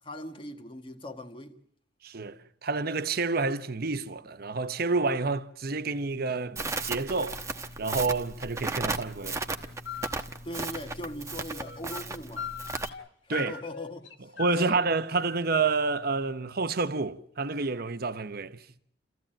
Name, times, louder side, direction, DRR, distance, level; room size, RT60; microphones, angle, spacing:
voice 1, 0.0-1.5 10.4-12.5 13.2-14.8, left 1 dB, 25° left, 1.6 m, -40 dB
voice 2, 2.0-7.4 7.8-9.4 13.3-13.6 14.4-18.8, right 3 dB, 55° right, 1.0 m, -29 dB
Crackle, 6.6-12.9, right 3 dB, 15° right, 1.0 m, -35 dB
sound 1, 9.9-10.2 11.5-12.1 12.4-13.1 13.3-14.8, left 6 dB, 75° left, 1.3 m, -39 dB
29.0 x 15.0 x 8.9 m
head